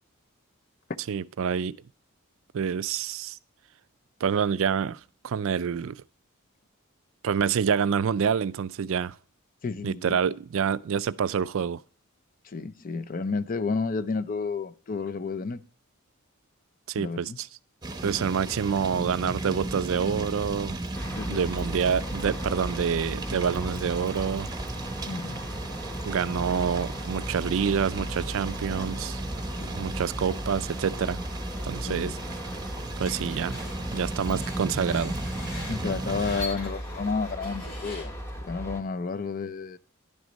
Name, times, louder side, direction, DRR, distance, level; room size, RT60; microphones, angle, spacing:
voice 1, 1.1-1.7 2.5-3.4 4.2-5.0 5.2-6.0 7.2-9.1 9.8-11.8 16.9-17.5 18.0-20.8 21.3-24.5 26.1-29.2 29.7-31.2 31.6-32.2 33.0-33.6 33.9-35.1, right 7 dB, 60° right, 0.4 m, -27 dB
voice 2, 9.6-10.2 12.4-15.6 17.0-17.4 21.2-21.5 25.1-25.4 29.5-29.9 31.9-32.1 35.7-38.1 38.4-39.8, left 4 dB, 40° left, 0.5 m, -31 dB
sound 1, 17.8-36.5, right 2 dB, 20° right, 0.9 m, -35 dB
sound 2, 20.9-38.8, equal, 10° left, 1.2 m, -38 dB
Screech, 33.0-38.3, left 2 dB, 80° left, 3.7 m, -43 dB
10.5 x 6.3 x 3.9 m
head